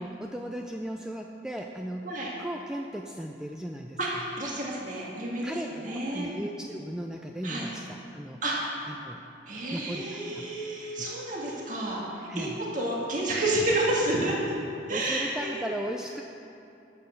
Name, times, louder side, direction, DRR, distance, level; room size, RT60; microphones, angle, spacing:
voice 1, 0.0-2.1 2.4-4.0 5.4-8.4 8.9-9.2 9.7-10.5 11.0-11.1 12.3-12.6 14.9-16.2, equal, 5° right, 2 dB, 0.4 m, -36 dB
voice 2, 4.0-6.3 7.4-7.7 8.4-8.8 9.5-14.4 14.9-15.7, right 1 dB, 45° right, -4 dB, 1.8 m, -30 dB
12.5 x 7.2 x 6.5 m, 2.7 s
head